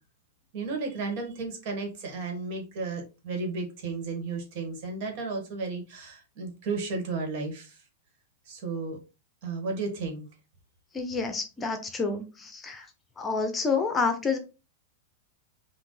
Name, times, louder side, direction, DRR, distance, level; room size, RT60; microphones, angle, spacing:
voice 1, 0.5-7.8 8.5-9.0 9.4-10.2, right 3 dB, 55° right, 3 dB, 1.8 m, -33 dB
voice 2, 10.9-12.9 13.2-14.4, left 4 dB, 20° left, 7 dB, 0.8 m, -29 dB
5.4 x 2.8 x 3.3 m, 0.30 s
hypercardioid pair, 105°, 0 cm